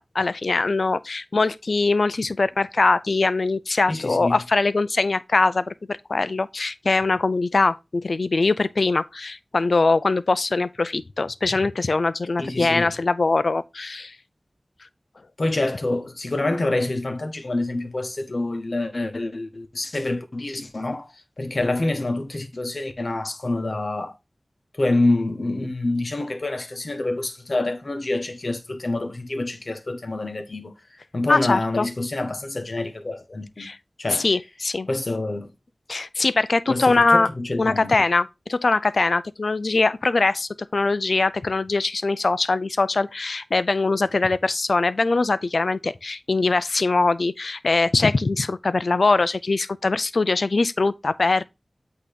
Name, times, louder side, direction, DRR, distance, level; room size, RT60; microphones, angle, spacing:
voice 1, 0.0-14.2 31.3-31.9 33.6-33.8 34.1-34.9 35.9-37.3 37.6-51.4, left 3 dB, 85° left, 0.4 m, -22 dB
voice 2, 3.9-4.4 12.4-12.9 15.4-21.1 21.4-24.1 24.7-30.7 31.1-33.7 34.0-34.3 34.9-35.5 36.7-38.0, left 2 dB, 65° left, 1.1 m, -26 dB
8.4 x 2.9 x 5.1 m
wide cardioid pair, 65°, 0 cm